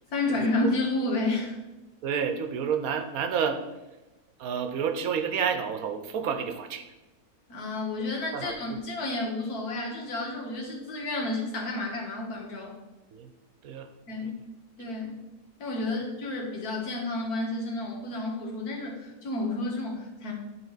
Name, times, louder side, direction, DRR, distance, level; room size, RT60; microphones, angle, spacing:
voice 1, 0.1-1.5 7.5-12.7 14.1-14.4 14.8-15.2 15.6-20.3, left 2 dB, 85° left, -2 dB, 2.0 m, -31 dB
voice 2, 2.0-3.6 4.4-6.8 8.3-8.8 13.1-13.3 13.6-13.9 14.2-14.3, right 7 dB, 75° right, 6 dB, 1.2 m, -30 dB
10.5 x 3.8 x 4.0 m, 1.0 s
omnidirectional pair, 1.5 m